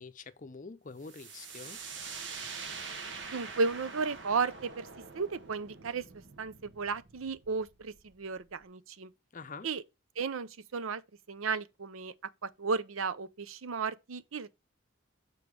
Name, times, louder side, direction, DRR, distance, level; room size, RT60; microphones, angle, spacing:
voice 1, 0.0-1.8 9.3-9.7, left 4 dB, 40° left, 0.6 m, -46 dB
sound 1, 1.0-8.6, right 5 dB, 60° right, 1.2 m, -45 dB
voice 2, 3.3-4.9 5.1-6.0 6.4-9.1 9.6-9.8 10.2-11.0 11.3-12.1 12.4-14.5, right 4 dB, 80° right, 0.6 m, -34 dB
7.1 x 4.5 x 4.7 m
head